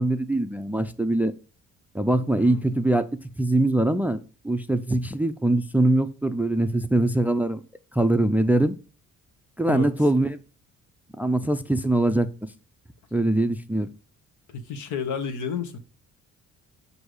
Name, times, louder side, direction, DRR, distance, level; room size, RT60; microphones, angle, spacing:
voice 1, 0.0-1.3 1.9-3.1 3.4-4.2 4.4-7.6 7.9-8.7 9.6-10.4 11.2-12.3 13.1-13.9, right 1 dB, 5° right, 0.3 m, -22 dB
voice 2, 14.5-15.8, left 6 dB, 75° left, 1.0 m, -31 dB
7.9 x 2.7 x 4.7 m
cardioid pair, 90°, 30 cm